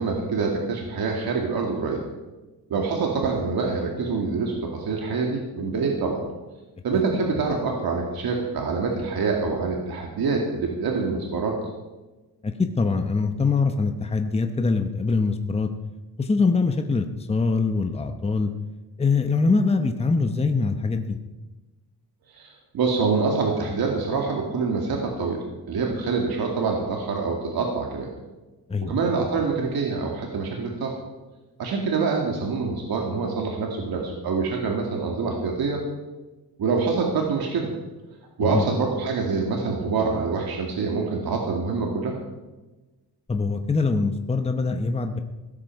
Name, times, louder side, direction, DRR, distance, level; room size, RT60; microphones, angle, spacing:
voice 1, 0.0-2.0 2.7-6.2 6.8-11.6 22.3-25.4 25.7-28.1 28.8-30.9 31.6-35.8 36.6-37.7 38.4-42.2, right 4 dB, 70° right, 0 dB, 2.4 m, -25 dB
voice 2, 12.4-15.7 16.2-18.5 19.0-21.2 28.7-29.0 38.4-38.7 43.3-45.2, left 4 dB, 15° left, 6 dB, 0.9 m, -23 dB
16.5 x 13.0 x 4.7 m, 1.1 s
wide cardioid pair, 140°, 38 cm